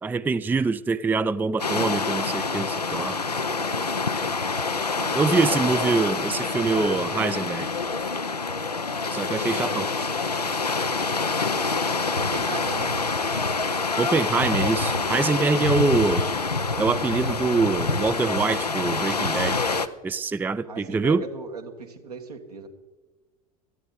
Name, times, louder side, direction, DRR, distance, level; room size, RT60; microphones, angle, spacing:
voice 1, 0.0-3.2 5.1-7.7 9.1-9.9 14.0-16.3 16.8-19.7 20.0-21.2, right 4 dB, 10° right, 15 dB, 0.4 m, -24 dB
beach sea ocean waves with people, 1.6-19.9, left 4 dB, 90° left, 0.6 m, -26 dB
voice 2, 4.9-5.8 12.1-12.9 20.7-22.7, right 4 dB, 75° right, 3 dB, 1.7 m, -37 dB
17.0 x 13.5 x 4.0 m, 1.2 s
figure-of-eight pair, 70°, 20 cm